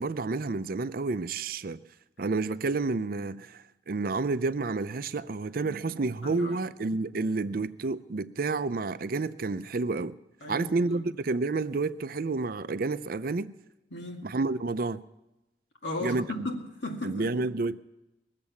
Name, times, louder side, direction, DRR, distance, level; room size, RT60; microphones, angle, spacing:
voice 1, 0.0-1.8 2.2-10.2 10.5-13.5 14.2-15.0 16.0-16.3 17.0-17.8, right 3 dB, 50° right, 0.5 m, -30 dB
voice 2, 5.6-6.6 10.4-11.0 13.9-14.4 15.8-17.3, left 1 dB, 85° left, 2.2 m, -37 dB
20.5 x 7.5 x 7.0 m
head